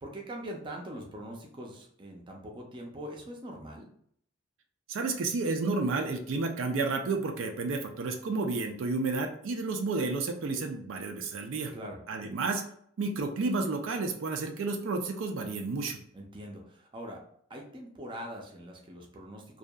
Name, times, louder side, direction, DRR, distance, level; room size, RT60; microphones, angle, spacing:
voice 1, 0.0-3.9 11.7-12.0 16.1-17.2 17.5-19.6, equal, 25° right, 0 dB, 0.5 m, -42 dB
voice 2, 4.9-11.7 12.1-12.6 13.0-16.0, right 3 dB, 80° right, 4 dB, 0.4 m, -31 dB
2.7 x 2.3 x 2.2 m, 0.64 s
head